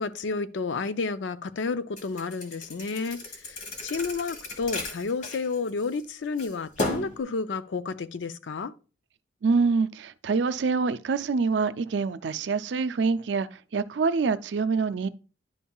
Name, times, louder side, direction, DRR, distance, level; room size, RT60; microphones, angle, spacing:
voice 1, 0.0-8.7, left 4 dB, 80° left, 0.5 m, -31 dB
Thump thud, 2.0-6.0 6.4-7.2, left 2 dB, 40° left, 1.3 m, -34 dB
voice 2, 9.4-15.1, right 4 dB, 75° right, 0.4 m, -26 dB
10.5 x 5.4 x 2.3 m
head